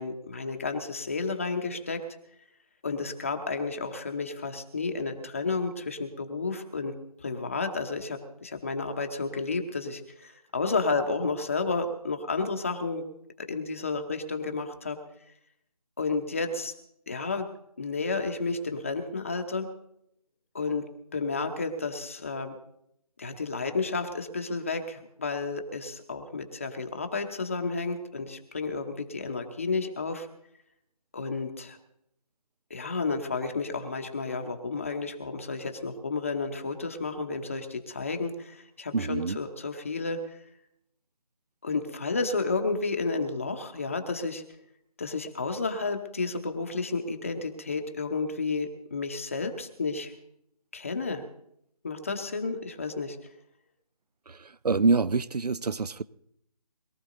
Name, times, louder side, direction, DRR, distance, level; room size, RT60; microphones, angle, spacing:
voice 1, 0.0-2.0 2.8-6.9 7.2-13.0 13.4-15.0 16.0-16.7 17.1-17.4 17.8-19.7 20.5-20.8 21.1-22.5 23.2-30.3 31.1-31.8 32.7-40.4 41.6-44.4 45.0-50.1 50.7-51.2 51.8-53.2, left 4 dB, 20° left, 0.8 m, -31 dB
voice 2, 38.9-39.4 54.3-54.4 54.6-56.0, right 4 dB, 85° right, 0.7 m, -25 dB
21.5 x 13.5 x 3.9 m
figure-of-eight pair, 170°, 20 cm